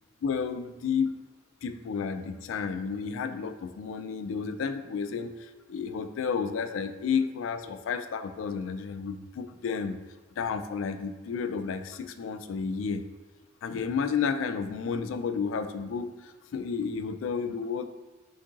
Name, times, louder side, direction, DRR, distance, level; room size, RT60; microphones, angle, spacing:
voice 1, 0.2-1.2 1.6-10.0 10.4-13.0 13.6-17.9, left 6 dB, 85° left, 9 dB, 0.3 m, -31 dB
4.5 x 2.6 x 3.7 m, 1.2 s
head